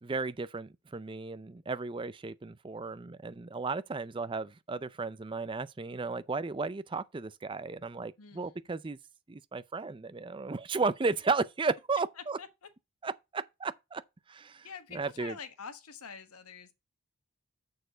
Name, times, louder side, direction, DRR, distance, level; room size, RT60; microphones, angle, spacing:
voice 1, 0.0-9.0 9.3-12.4 13.0-14.0 14.3-14.7 14.9-15.3, right 4 dB, 20° right, 0.4 m, -34 dB
voice 2, 8.2-8.7 12.2-12.7 14.6-16.7, left 6 dB, 85° left, 1.3 m, -46 dB
6.8 x 6.7 x 4.0 m
head